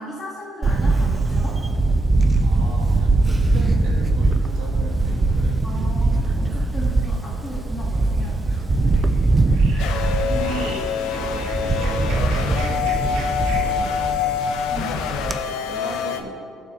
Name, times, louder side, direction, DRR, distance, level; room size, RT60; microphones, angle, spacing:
voice 1, 0.0-1.6 5.6-9.0 9.7-10.7 14.7-15.0, left 1 dB, 5° left, -13 dB, 2.4 m, -36 dB
Camera, 0.6-15.4, right 2 dB, 10° right, 0.3 m, -21 dB
voice 2, 2.4-5.6 10.0-10.9 11.2-14.3 15.4-16.4, right 2 dB, 60° right, -5 dB, 2.1 m, -36 dB
sound 1, 7.9-8.3 8.8-9.2 9.5-14.3, right 4 dB, 80° right, 1.3 m, -40 dB
sound 2, 9.8-16.2, left 8 dB, 75° left, 0.8 m, -26 dB
18.0 x 6.6 x 2.8 m, 2.4 s
cardioid pair, 175°, 0 cm